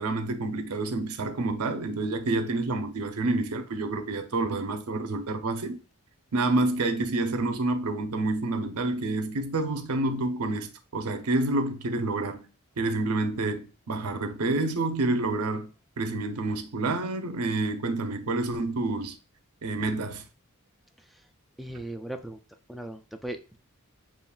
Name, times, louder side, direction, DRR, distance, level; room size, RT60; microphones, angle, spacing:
voice 1, 0.0-5.8 6.3-12.5 12.8-15.7 16.0-19.2 19.6-20.2, right 2 dB, 85° right, 0.7 m, -28 dB
voice 2, 21.6-22.4 22.7-23.6, right 1 dB, ahead, 0.4 m, -38 dB
7.0 x 2.4 x 2.3 m
head